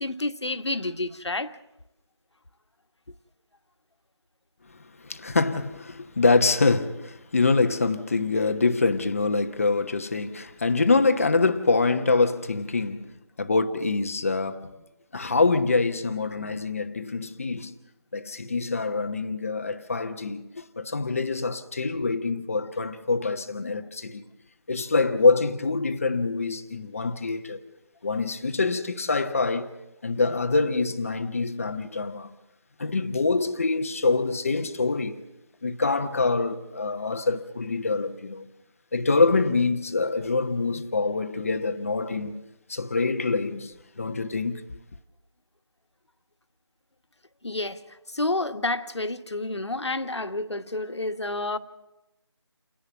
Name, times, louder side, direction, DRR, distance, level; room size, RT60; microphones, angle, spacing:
voice 1, 0.0-1.5 47.4-47.8 48.1-51.6, left 2 dB, 70° left, 1.6 m, -29 dB
voice 2, 5.0-13.1 13.4-14.7 15.1-17.7 18.1-24.2 24.7-27.6 28.0-29.7 30.0-32.3 32.8-35.2 35.6-38.5 38.9-42.4 42.7-44.6, left 3 dB, 30° left, 1.1 m, -25 dB
29.5 x 11.0 x 8.3 m
figure-of-eight pair, 165°, 15 cm